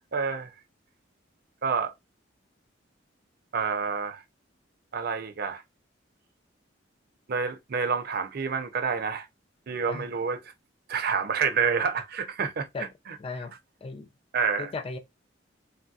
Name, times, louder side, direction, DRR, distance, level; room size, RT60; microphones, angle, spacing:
voice 1, 0.1-0.5 1.6-1.9 3.5-4.2 4.9-5.6 7.3-9.3 9.7-10.4 10.9-12.7 14.3-14.7, right 5 dB, 55° right, 0.5 m, -28 dB
voice 2, 13.2-13.5 13.8-14.1 14.6-15.0, left 4 dB, 30° left, 0.3 m, -35 dB
3.1 x 2.6 x 2.3 m
head